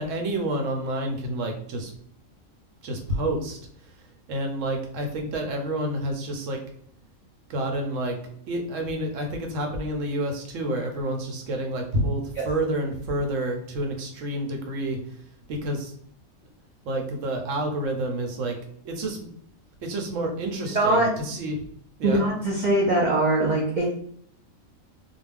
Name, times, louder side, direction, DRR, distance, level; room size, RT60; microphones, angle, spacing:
voice 1, 0.0-1.9 2.8-3.6 4.3-6.6 7.5-8.2 8.5-15.0 15.5-15.9 16.8-18.6 18.8-19.2 19.8-21.6 22.0-22.2, right 1 dB, 70° right, 3 dB, 1.0 m, -29 dB
voice 2, 20.7-21.1 22.0-24.0, right 1 dB, 90° right, -3 dB, 0.4 m, -22 dB
2.5 x 2.2 x 3.3 m, 0.64 s
omnidirectional pair, 1.5 m